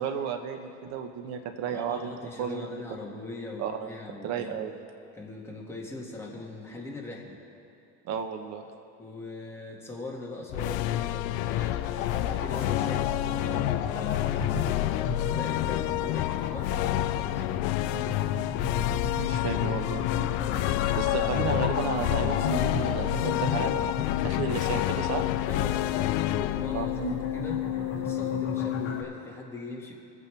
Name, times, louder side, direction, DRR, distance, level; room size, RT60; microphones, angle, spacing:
voice 1, 0.0-2.8 3.6-3.9 4.2-4.7 8.0-8.6 19.2-20.0 21.0-25.3 26.7-26.9, right 7 dB, 60° right, 7 dB, 1.2 m, -33 dB
voice 2, 1.7-4.6 5.1-7.4 9.0-11.8 12.3-14.9 15.2-17.4 25.5-27.6 27.9-29.9, left 2 dB, 10° left, -3 dB, 2.1 m, -41 dB
sound 1, 10.5-27.9, left 15 dB, 80° left, 0.5 m, -29 dB
sound 2, 11.5-29.0, left 6 dB, 50° left, 1.6 m, -33 dB
23.5 x 8.5 x 3.5 m, 2.8 s
cardioid pair, 135°, 30 cm